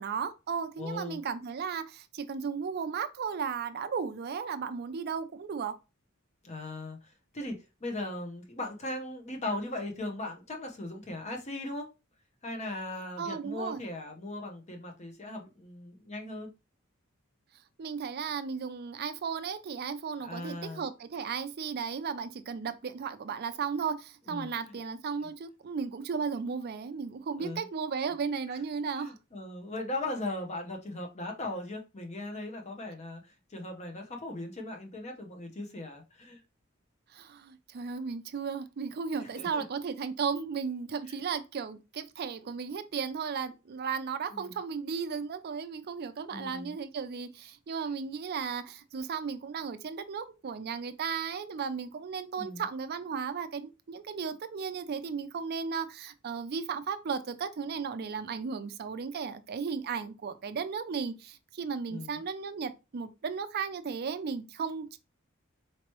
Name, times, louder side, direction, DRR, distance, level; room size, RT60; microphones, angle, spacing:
voice 1, 0.0-5.7 13.2-13.8 17.8-29.1 37.1-65.0, right 6 dB, 50° right, 0.4 m, -35 dB
voice 2, 0.8-1.2 6.4-7.6 7.8-11.9 12.4-16.5 20.2-20.9 24.3-24.8 27.4-27.6 28.5-28.6 29.0-33.2 33.5-36.4 39.2-39.6 41.1-41.2 44.3-44.6 46.3-46.7 52.4-52.6 61.9-62.2, left 1 dB, 30° left, 0.8 m, -38 dB
4.4 x 2.9 x 3.0 m
head